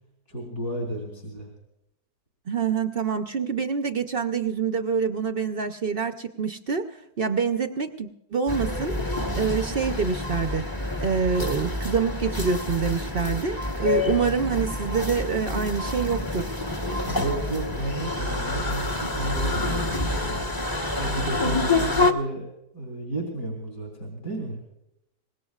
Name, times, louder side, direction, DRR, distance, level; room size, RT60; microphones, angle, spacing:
voice 1, 0.3-1.5 17.0-20.4 21.0-22.5 22.7-24.6, right 1 dB, 60° left, -1 dB, 3.5 m, -32 dB
voice 2, 2.5-6.9 7.2-8.9 9.3-10.7 11.0-16.5, right 5 dB, 55° right, 8 dB, 0.6 m, -26 dB
sound 1, 8.5-22.1, left 2 dB, 15° left, 0.8 m, -27 dB
24.5 x 20.0 x 2.4 m, 0.86 s
omnidirectional pair, 1.8 m